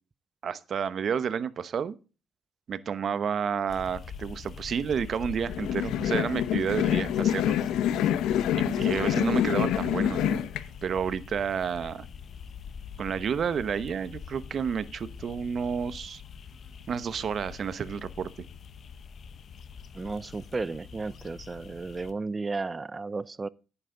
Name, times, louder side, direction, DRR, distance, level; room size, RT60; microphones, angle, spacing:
voice 1, 0.4-1.9 2.7-7.6 8.5-10.4 10.8-12.1 13.0-16.2 16.9-18.5, right 7 dB, 55° right, 0.9 m, -30 dB
sound 1, 3.7-22.1, left 6 dB, 55° left, 1.0 m, -44 dB
sound 2, 5.5-10.6, left 10 dB, 90° left, 0.8 m, -26 dB
voice 2, 9.0-9.4 19.9-23.5, right 3 dB, 25° right, 0.5 m, -34 dB
10.0 x 9.9 x 3.8 m
cardioid pair, 90°, 0 cm